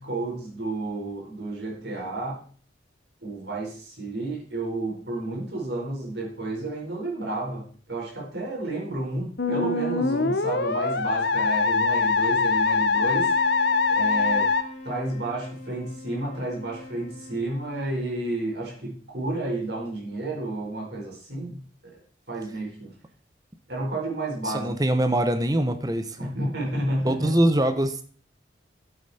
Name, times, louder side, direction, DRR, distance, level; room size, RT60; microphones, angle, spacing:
voice 1, 0.0-2.4 3.2-13.3 13.9-14.5 14.8-22.0 22.3-22.9 23.7-24.7 26.2-27.3, right 2 dB, 60° right, -2 dB, 4.7 m, -31 dB
Musical instrument, 9.4-14.6, left 4 dB, 60° left, 0.8 m, -23 dB
sound 1, 12.9-18.4, left 2 dB, 40° left, 1.5 m, -43 dB
voice 2, 24.4-26.4 26.7-28.0, right 1 dB, 20° right, 9 dB, 0.9 m, -24 dB
12.0 x 8.7 x 4.3 m, 0.43 s
head